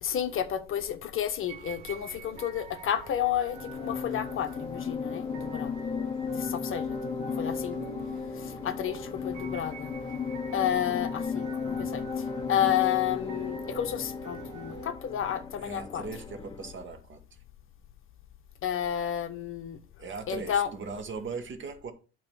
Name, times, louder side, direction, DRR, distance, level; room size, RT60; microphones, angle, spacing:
voice 1, 0.0-5.9 6.2-7.8 8.3-9.9 10.5-16.0 18.6-19.8 20.3-20.7, left 10 dB, 40° left, 0.8 m, -31 dB
sound 1, 1.5-14.9, right 6 dB, 60° right, 1.7 m, -47 dB
sound 2, 3.5-16.9, left 5 dB, 15° left, 0.6 m, -35 dB
voice 2, 15.6-17.2 20.0-21.9, right 4 dB, 35° right, 1.5 m, -39 dB
8.6 x 3.0 x 6.1 m
supercardioid pair, 90°, 33 cm